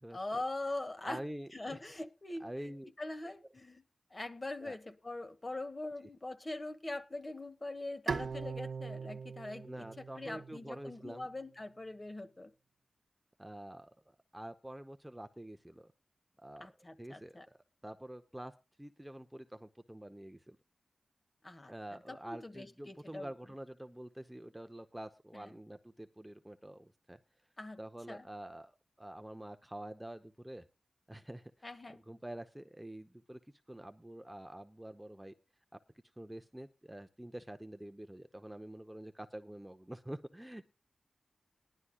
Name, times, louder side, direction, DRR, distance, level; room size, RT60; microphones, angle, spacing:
voice 1, 0.1-1.2 1.5-2.7 3.0-3.8 4.1-12.5 16.6-17.5 21.4-23.3 25.3-25.5 27.6-27.8 28.1-28.3 31.6-32.0, left 2 dB, 30° left, 10 dB, 1.2 m, -42 dB
voice 2, 1.0-1.8 2.4-2.9 4.6-4.8 9.6-11.3 13.4-15.9 16.4-16.7 17.0-17.4 17.8-18.5 18.8-20.6 21.7-27.2 27.8-30.6 31.1-31.7 31.9-33.4 33.7-35.3 35.7-35.8 36.2-40.7, right 1 dB, 10° right, 8 dB, 0.7 m, -47 dB
Bowed string instrument, 8.1-11.3, right 5 dB, 75° right, 0.9 m, -41 dB
20.5 x 11.0 x 2.3 m, 0.28 s
wide cardioid pair, 110°, 0 cm